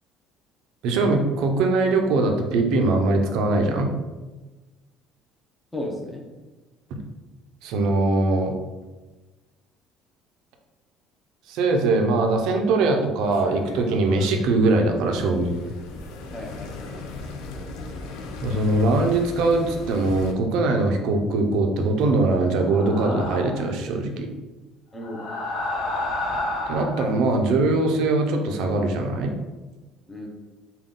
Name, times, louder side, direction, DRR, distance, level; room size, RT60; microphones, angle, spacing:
voice 1, 0.8-3.9 7.6-8.5 11.5-15.6 18.4-24.3 26.7-29.3, right 2 dB, 60° right, 3 dB, 0.5 m, -21 dB
voice 2, 5.7-6.3 16.3-17.2 24.9-25.4 30.1-30.3, left 1 dB, 5° left, -1 dB, 0.5 m, -35 dB
sound 1, 13.2-20.3, left 3 dB, 85° left, 0.5 m, -38 dB
sound 2, 22.5-23.7 25.0-27.1, left 2 dB, 45° left, 1.0 m, -30 dB
3.7 x 2.2 x 3.6 m, 1.2 s
cardioid pair, 175°, 0 cm